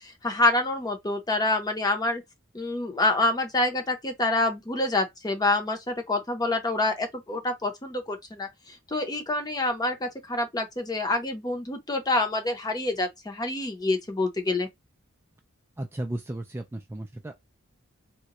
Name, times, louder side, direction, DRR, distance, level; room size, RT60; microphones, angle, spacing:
voice 1, 0.0-2.2 2.5-14.7, left 2 dB, 20° left, 0.7 m, -27 dB
voice 2, 15.8-17.3, right 1 dB, 10° right, 0.3 m, -34 dB
3.7 x 2.2 x 2.9 m
head